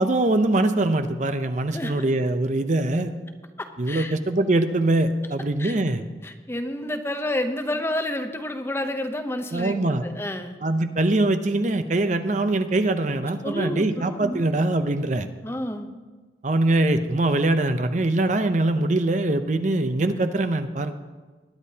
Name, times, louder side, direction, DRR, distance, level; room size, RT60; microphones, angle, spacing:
voice 1, 0.0-3.1 3.8-6.0 9.5-10.0 10.6-15.3 16.4-21.0, right 2 dB, 40° right, 9 dB, 0.6 m, -23 dB
voice 2, 1.7-2.1 3.6-4.1 5.6-5.8 6.2-10.6 13.4-14.5 15.4-15.9, left 1 dB, 15° left, 6 dB, 0.7 m, -30 dB
21.0 x 10.5 x 2.8 m, 1.3 s
head